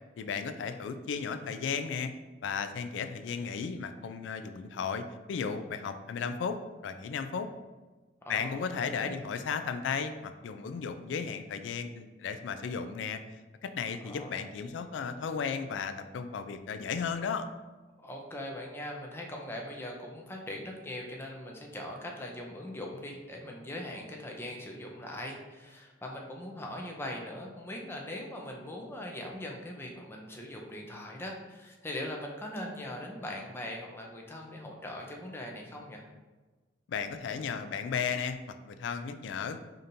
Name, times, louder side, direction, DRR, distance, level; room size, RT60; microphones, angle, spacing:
voice 1, 0.2-2.1 2.4-6.6 6.8-7.5 8.3-13.2 13.6-17.5 36.9-38.4 38.6-39.6, left 6 dB, 70° left, 9 dB, 0.3 m, -34 dB
voice 2, 8.2-9.2 14.0-14.6 18.0-36.1, left 1 dB, 10° left, 0 dB, 0.5 m, -41 dB
5.0 x 2.8 x 2.6 m, 1.3 s
head